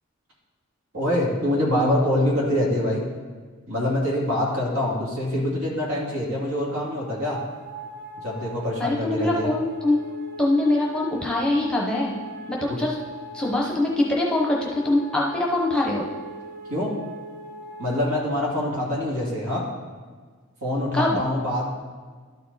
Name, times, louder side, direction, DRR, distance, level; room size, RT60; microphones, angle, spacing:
voice 1, 0.9-3.0 3.7-7.4 8.2-9.5 16.7-16.9 17.8-19.6 20.6-21.7, left 1 dB, 80° right, -4 dB, 2.3 m, -25 dB
sound 1, 5.5-18.0, right 1 dB, 55° right, 1.4 m, -41 dB
voice 2, 8.8-10.1 10.4-12.2 12.5-13.0 13.3-16.0 20.9-21.2, left 2 dB, 5° left, -3 dB, 0.9 m, -23 dB
12.0 x 4.6 x 4.0 m, 1.5 s
head